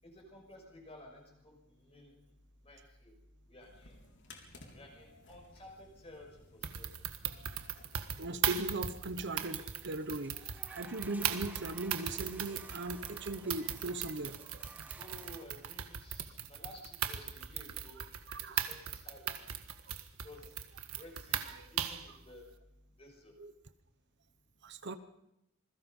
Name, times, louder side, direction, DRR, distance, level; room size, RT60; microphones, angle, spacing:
voice 1, 0.0-2.1 2.6-3.1 3.5-4.0 4.7-6.9 15.0-18.0 18.4-19.5 20.2-20.5 20.9-22.5 23.0-23.4, left 1 dB, 30° left, 2 dB, 6.3 m, -54 dB
sound 1, 3.6-9.5, left 2 dB, 55° left, 3.8 m, -58 dB
sound 2, 6.6-22.1, right 9 dB, 85° right, 1.6 m, -38 dB
voice 2, 8.2-14.6 18.3-18.6 19.9-20.0 21.5-21.6 23.4-23.5 24.6-25.0, right 2 dB, 55° right, 10 dB, 1.1 m, -39 dB
sound 3, 9.2-15.4, right 1 dB, 5° right, 1.3 m, -55 dB
27.0 x 21.5 x 5.5 m, 0.82 s
head